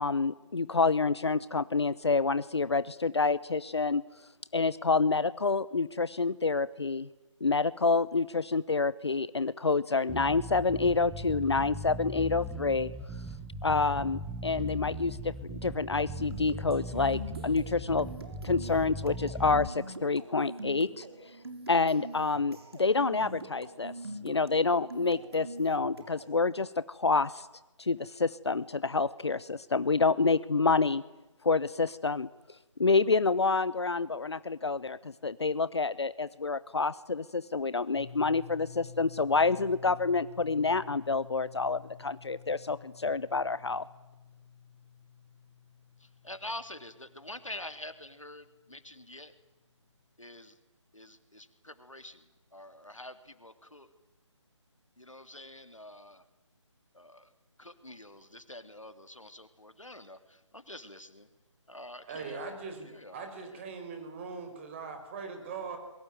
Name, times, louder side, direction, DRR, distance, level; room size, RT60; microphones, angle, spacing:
voice 1, 0.0-4.0 4.5-7.1 7.4-12.9 13.6-18.1 18.4-21.3 21.7-23.9 24.2-27.5 27.8-31.0 31.4-32.3 32.8-43.8, left 4 dB, 60° left, 18 dB, 0.9 m, -28 dB
Bass guitar, 10.1-19.7, equal, ahead, 1.0 m, -39 dB
sound 1, 16.2-26.4, right 2 dB, 55° right, 4.0 m, -44 dB
sound 2, 38.0-48.5, left 8 dB, 40° left, 1.6 m, -51 dB
voice 2, 46.0-49.3 50.2-50.6 50.9-53.9 55.0-56.2 56.9-57.3 57.6-61.3 61.7-62.6 62.8-63.7, left 1 dB, 80° left, 10 dB, 3.0 m, -46 dB
voice 3, 62.1-65.8, right 5 dB, 25° right, 6 dB, 4.8 m, -41 dB
27.0 x 23.0 x 9.2 m, 1.0 s
figure-of-eight pair, 150°, 16 cm